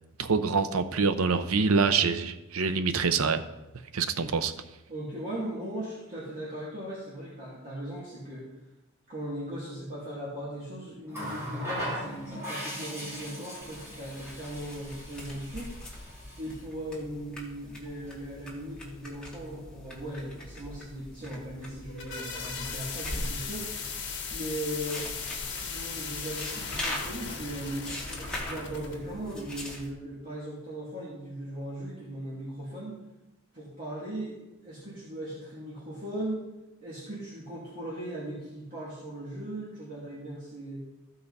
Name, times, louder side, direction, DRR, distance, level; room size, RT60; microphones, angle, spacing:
voice 1, 0.2-3.4 3.9-4.5, right 5 dB, 85° right, 10 dB, 0.7 m, -25 dB
voice 2, 4.9-8.5 9.1-15.7 16.4-23.7 24.3-25.1 25.6-33.0 33.5-36.5 36.8-40.8, right 1 dB, 40° right, -8 dB, 2.6 m, -38 dB
Water tap faucet, 11.1-16.6 17.9-18.1, equal, 15° right, 3.0 m, -39 dB
sound 1, 13.6-29.9, left 1 dB, 5° left, 1.9 m, -41 dB
sound 2, 21.7-29.0, left 5 dB, 55° left, 1.7 m, -38 dB
15.0 x 5.5 x 4.1 m, 0.98 s
head